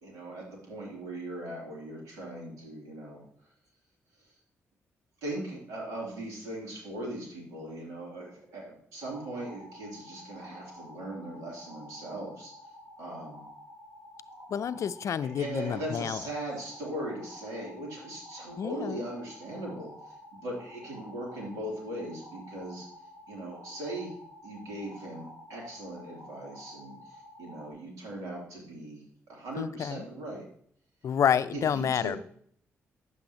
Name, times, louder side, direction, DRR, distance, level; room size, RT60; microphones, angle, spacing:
voice 1, 0.0-3.2 5.2-12.5 13.0-13.4 15.4-19.9 20.4-22.9 23.3-24.1 24.4-30.4 31.5-32.2, right 1 dB, 90° right, -2 dB, 2.9 m, -39 dB
sound 1, 9.0-27.7, left 1 dB, 75° right, 4.1 m, -50 dB
voice 2, 14.5-16.2 18.6-19.1 29.6-30.1 31.0-32.2, left 8 dB, 65° left, 14 dB, 0.4 m, -29 dB
9.5 x 7.8 x 2.9 m, 0.62 s
supercardioid pair, 60°, 6 cm